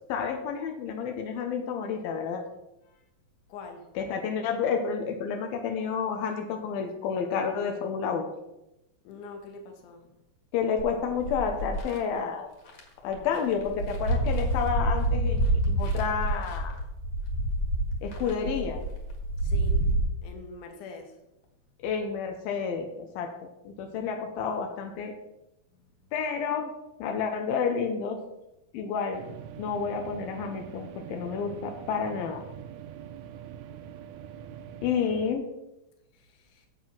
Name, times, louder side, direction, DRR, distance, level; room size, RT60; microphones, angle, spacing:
voice 1, 0.1-2.4 4.0-8.3 10.5-12.5 13.0-16.8 18.0-18.8 21.8-23.3 23.6-25.1 26.1-26.7 27.0-28.2 28.7-29.2 29.6-32.4 34.8-35.5, left 6 dB, 85° left, 4 dB, 2.8 m, -30 dB
voice 2, 3.5-3.8 9.0-10.1 19.4-19.8 20.2-21.1 25.7-25.9 36.1-36.7, left 4 dB, 65° left, 4 dB, 2.6 m, -44 dB
sound 1, 10.8-12.0 12.7-12.8 13.1-20.0, right 1 dB, 50° left, 2.4 m, -28 dB
sound 2, 29.1-35.3, right 9 dB, 90° right, 1.7 m, -43 dB
7.7 x 7.6 x 5.7 m, 0.89 s
omnidirectional pair, 4.2 m